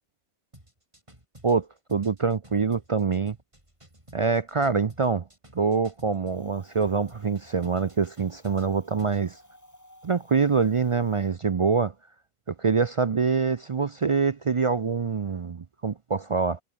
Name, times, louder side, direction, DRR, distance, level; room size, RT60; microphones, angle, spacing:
sound 1, 0.5-6.4 6.8-9.3, right 1 dB, 25° right, 5.8 m, -53 dB
voice 1, 1.4-3.4 4.1-5.2 5.5-9.4 10.0-11.9 12.5-16.6, right 5 dB, 50° right, 0.4 m, -25 dB
Wind, 6.2-11.3, left 1 dB, 15° left, 4.3 m, -56 dB
omnidirectional pair, 1.3 m